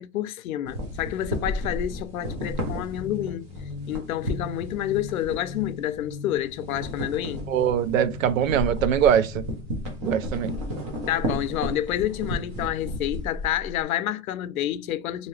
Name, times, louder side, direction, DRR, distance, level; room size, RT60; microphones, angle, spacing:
voice 1, 0.0-3.5 3.9-7.4 11.1-15.3, left 12 dB, 80° left, 0.6 m, -29 dB
sound 1, 0.7-6.1 6.4-13.8, equal, 25° right, 0.7 m, -33 dB
sound 2, 2.2-10.4, left 5 dB, 25° left, 0.8 m, -41 dB
voice 2, 7.5-9.5 10.0-10.5, right 9 dB, 70° right, 0.6 m, -22 dB
3.7 x 2.7 x 3.1 m
supercardioid pair, 175°, 42 cm